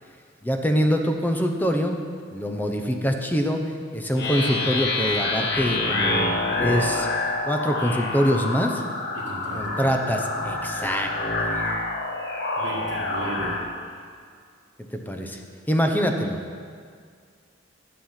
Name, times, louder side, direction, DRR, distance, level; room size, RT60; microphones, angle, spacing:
voice 1, 0.4-2.0 2.3-7.1 7.5-8.8 9.5-11.1 11.4-11.6 14.9-15.4 15.7-16.4, equal, 10° left, 4 dB, 0.8 m, -24 dB
sound 1, 4.2-13.6, left 2 dB, 60° left, 1.1 m, -27 dB
voice 2, 9.1-10.1 12.6-13.6 13.9-14.0, right 2 dB, 65° right, -4 dB, 1.9 m, -35 dB
11.5 x 7.6 x 5.8 m, 2.1 s
head